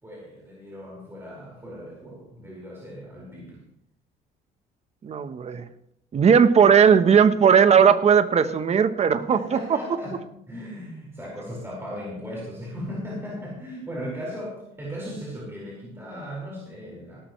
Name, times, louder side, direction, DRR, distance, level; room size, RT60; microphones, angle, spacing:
voice 1, 0.0-3.6 9.3-17.2, equal, 15° right, -4 dB, 4.9 m, -37 dB
voice 2, 5.0-5.7 6.1-9.6, right 7 dB, 40° right, 11 dB, 1.0 m, -17 dB
17.5 x 13.0 x 3.2 m, 0.77 s
cardioid pair, 110°, 17 cm